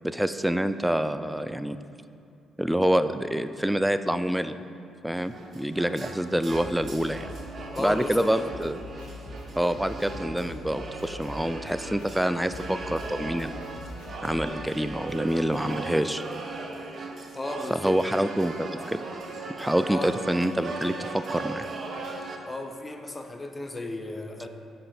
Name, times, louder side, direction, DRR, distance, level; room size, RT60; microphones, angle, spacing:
voice 1, 0.0-1.8 2.6-4.6 5.0-7.3 7.8-8.9 9.6-13.6 14.2-16.2 17.7-19.0 19.6-21.7, right 1 dB, 5° right, 11 dB, 0.3 m, -26 dB
sound 1, 5.2-22.4, right 3 dB, 50° right, 0.6 m, -38 dB
sound 2, 6.5-14.5, left 2 dB, 85° left, 1.6 m, -43 dB
voice 2, 7.7-8.3 17.3-18.0 19.8-20.1 22.5-24.5, left 2 dB, 25° left, 5 dB, 0.7 m, -34 dB
7.4 x 5.0 x 4.5 m, 2.6 s
figure-of-eight pair, 40°, 0 cm